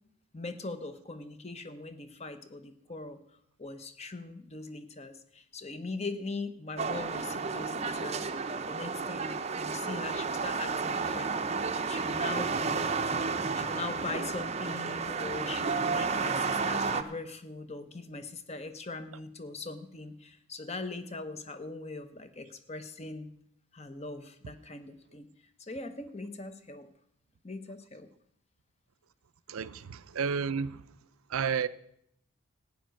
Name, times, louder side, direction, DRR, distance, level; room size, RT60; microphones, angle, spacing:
voice 1, 0.3-3.2 3.6-8.3 8.7-11.5 11.9-13.1 13.5-23.3 23.7-25.3 25.6-26.9 27.4-28.1, left 3 dB, 30° left, 0.9 m, -41 dB
sound 1, 6.8-17.0, right 4 dB, 30° right, 0.6 m, -32 dB
voice 2, 29.5-30.8 31.3-31.7, right 6 dB, 80° right, 0.5 m, -31 dB
14.5 x 9.2 x 6.4 m
head